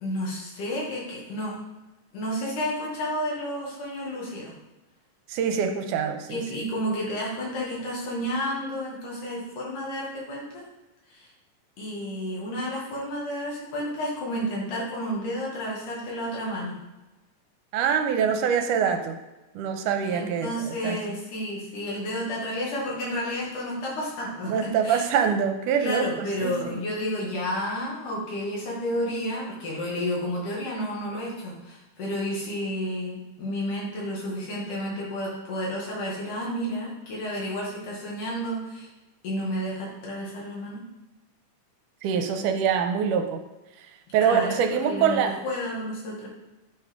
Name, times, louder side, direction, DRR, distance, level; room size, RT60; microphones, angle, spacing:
voice 1, 0.0-1.6 2.1-4.5 6.3-10.6 11.1-11.3 11.8-16.8 20.1-25.0 25.8-38.9 39.2-40.8 44.2-44.6 44.8-46.3, equal, 75° left, -4 dB, 3.4 m, -31 dB
voice 2, 5.3-6.4 17.7-19.2 19.6-21.0 24.5-26.8 42.0-43.4 44.1-45.4, right 7 dB, 85° right, 6 dB, 2.1 m, -25 dB
9.2 x 4.6 x 3.6 m, 1.1 s
omnidirectional pair, 3.7 m